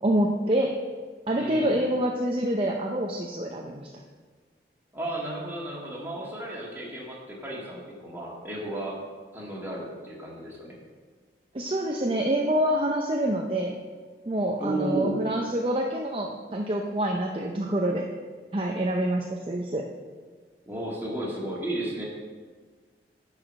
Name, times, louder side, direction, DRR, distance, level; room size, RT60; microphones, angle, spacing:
voice 1, 0.0-0.7 1.3-3.9 11.5-13.7 14.3-18.0 18.5-19.9, right 1 dB, 30° right, 1 dB, 0.6 m, -26 dB
voice 2, 1.3-1.8 4.9-9.0 9.3-10.7 14.6-15.3 20.7-22.0, right 1 dB, 10° right, -4 dB, 1.9 m, -33 dB
10.0 x 4.9 x 6.2 m, 1.5 s
head